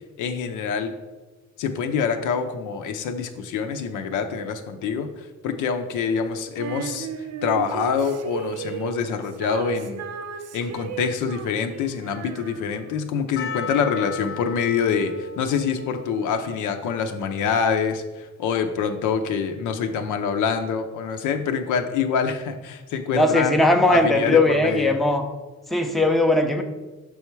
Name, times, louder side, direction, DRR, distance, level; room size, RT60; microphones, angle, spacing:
voice 1, 0.2-0.9 1.6-5.1 5.4-7.1 7.4-10.0 10.5-23.6 23.9-25.0, left 6 dB, 85° left, 7 dB, 0.6 m, -25 dB
Female singing, 6.6-13.1, right 7 dB, 55° right, 0.5 m, -35 dB
Percussion, 13.4-18.3, left 5 dB, 45° left, 0.6 m, -37 dB
voice 2, 23.1-25.3 25.7-26.6, left 2 dB, ahead, 4 dB, 0.5 m, -19 dB
6.2 x 3.4 x 4.5 m, 1.2 s
cardioid pair, 90°, 30 cm